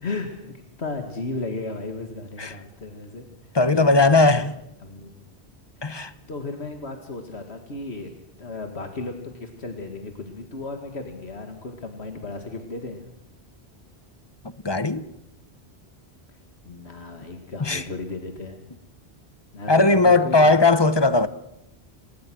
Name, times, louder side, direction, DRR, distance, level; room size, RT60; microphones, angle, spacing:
voice 1, 0.0-4.4 4.8-5.1 5.8-6.0 6.3-8.1 8.4-13.1 16.6-18.7 19.5-20.8, left 3 dB, 80° left, 2.3 m, -35 dB
voice 2, 3.5-4.6 5.8-6.1 14.6-15.0 17.6-17.8 19.7-21.3, left 3 dB, 25° left, 0.9 m, -18 dB
26.5 x 20.5 x 6.2 m
omnidirectional pair, 1.1 m